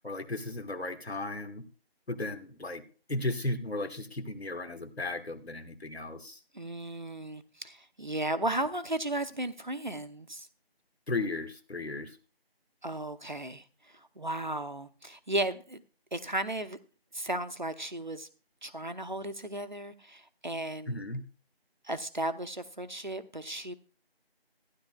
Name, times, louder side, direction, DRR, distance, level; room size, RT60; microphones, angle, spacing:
voice 1, 0.0-1.6 2.1-2.8 3.1-6.4 11.1-12.2 20.9-21.2, left 2 dB, 85° left, 8 dB, 1.5 m, -35 dB
voice 2, 6.5-10.5 12.8-13.6 14.2-15.8 16.1-16.8 17.1-18.3 18.6-21.0 21.8-23.7, right 1 dB, 50° right, 11 dB, 0.7 m, -35 dB
15.0 x 10.5 x 2.3 m, 0.36 s
figure-of-eight pair, 175°, 31 cm